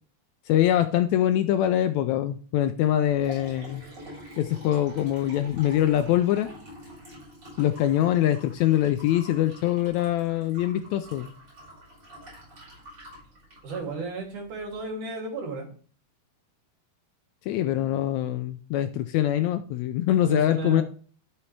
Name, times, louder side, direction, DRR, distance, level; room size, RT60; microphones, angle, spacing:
voice 1, 0.5-3.8 4.4-6.5 7.6-11.3 17.5-20.8, left 12 dB, 80° left, 9 dB, 1.7 m, -24 dB
Liquid, 3.1-14.8, equal, 35° right, 6.2 m, -46 dB
voice 2, 13.6-15.7 20.2-20.8, right 4 dB, 70° right, 0 dB, 4.2 m, -34 dB
13.0 x 7.0 x 3.3 m, 0.42 s
omnidirectional pair, 3.6 m